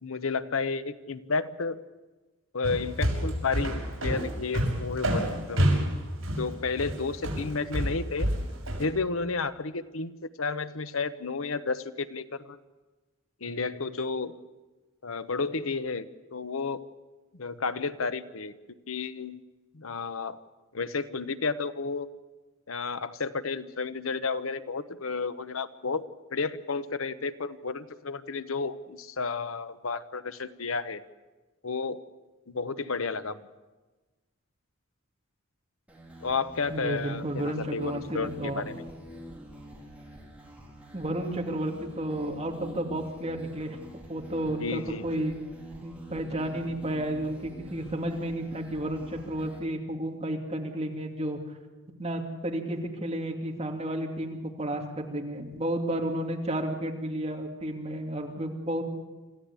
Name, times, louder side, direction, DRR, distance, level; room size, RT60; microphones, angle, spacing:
voice 1, 0.0-1.8 2.5-5.9 6.4-8.3 8.8-10.1 10.4-12.6 13.4-14.3 15.0-16.0 16.3-16.8 17.3-18.5 18.9-19.4 19.7-20.4 20.7-22.1 22.7-26.0 26.3-31.0 31.6-32.0 32.5-33.4 36.2-38.8 44.4-45.3, left 4 dB, 85° left, 12 dB, 1.0 m, -32 dB
sound 1, 2.6-8.8, equal, 75° right, 6.5 m, -28 dB
sound 2, 35.9-49.6, equal, 5° right, 4.1 m, -46 dB
voice 2, 36.7-38.6 40.9-43.8 44.1-45.4 45.8-51.4 52.0-58.8, right 1 dB, 30° right, 1 dB, 2.6 m, -32 dB
26.5 x 15.0 x 8.3 m, 1.2 s
head